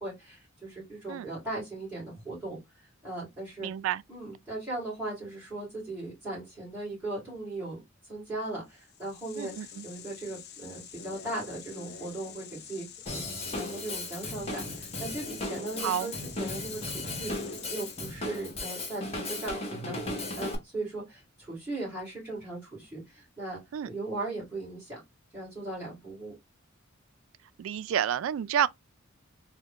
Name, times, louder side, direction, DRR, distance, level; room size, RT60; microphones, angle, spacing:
voice 1, 0.0-3.7 4.1-25.0 25.3-26.4, right 2 dB, 5° right, 2.1 m, -38 dB
voice 2, 3.6-4.0 9.4-9.9 15.8-16.1 23.7-23.9 27.6-28.7, right 9 dB, 80° right, 0.3 m, -29 dB
sound 1, 8.8-18.4, left 7 dB, 55° left, 0.5 m, -47 dB
Drum kit / Drum, 13.1-20.6, left 2 dB, 30° left, 1.0 m, -36 dB
3.5 x 2.2 x 3.6 m
head